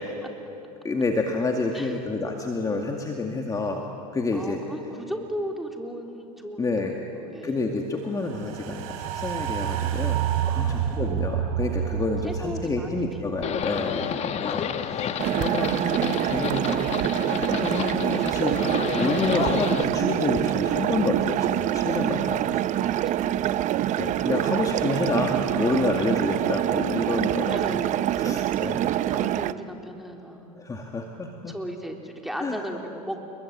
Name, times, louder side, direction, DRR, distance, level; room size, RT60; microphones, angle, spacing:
voice 1, 0.8-3.9 4.1-4.6 6.6-7.0 7.4-16.9 17.3-22.5 24.0-27.8 28.2-28.9 30.6-31.5 32.4-32.6, left 3 dB, 20° left, 2 dB, 2.2 m, -29 dB
voice 2, 4.3-7.6 10.4-11.0 12.2-13.0 13.4-13.5 14.1-14.4 22.8-23.7 24.3-24.6 26.0-26.1 27.5-28.0 29.0-30.5 31.5-33.2, equal, ahead, 2 dB, 3.6 m, -37 dB
sound 1, 8.2-14.6 14.9-15.0, right 10 dB, 70° right, 3.4 m, -29 dB
Livestock farm animals working animals, 13.4-19.8, left 8 dB, 35° left, 1.4 m, -30 dB
sound 2, 15.2-29.5, right 12 dB, 40° right, 0.8 m, -25 dB
30.0 x 22.0 x 8.8 m, 2.9 s
hypercardioid pair, 105°, 19 cm